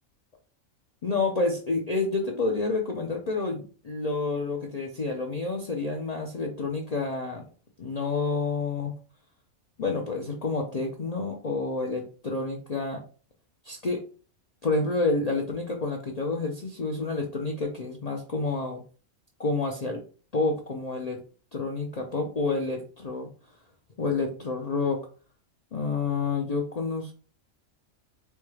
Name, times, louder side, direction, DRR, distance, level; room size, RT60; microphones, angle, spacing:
voice 1, 1.0-7.4 7.8-8.9 9.8-13.0 13.6-14.0 14.6-18.8 19.4-20.0 20.3-21.2 21.5-23.3 24.0-25.0 25.7-27.1, left 3 dB, 85° left, 1 dB, 0.3 m, -29 dB
4.3 x 2.3 x 3.1 m, 0.37 s
omnidirectional pair, 1.5 m